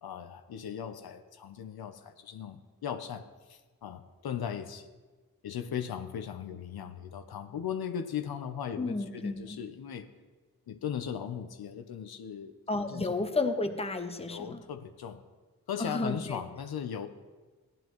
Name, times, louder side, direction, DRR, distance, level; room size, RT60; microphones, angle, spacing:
voice 1, 0.0-4.9 5.4-10.1 10.7-13.3 14.3-15.2 15.7-17.1, left 8 dB, 75° left, 9 dB, 0.7 m, -38 dB
voice 2, 8.8-9.4 12.7-14.6 15.8-16.4, left 3 dB, 15° left, 8 dB, 0.9 m, -32 dB
14.5 x 9.1 x 3.0 m, 1.3 s
cardioid pair, 50°, 38 cm